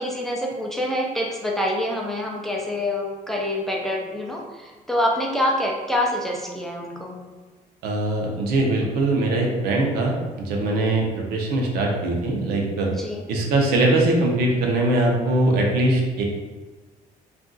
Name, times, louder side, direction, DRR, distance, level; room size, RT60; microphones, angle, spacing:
voice 1, 0.0-7.2 12.9-13.2, left 1 dB, ahead, -1 dB, 0.4 m, -26 dB
voice 2, 7.8-12.9 13.3-16.2, right 2 dB, 90° right, 0 dB, 0.7 m, -21 dB
2.5 x 2.3 x 3.7 m, 1.3 s
cardioid pair, 145°, 16 cm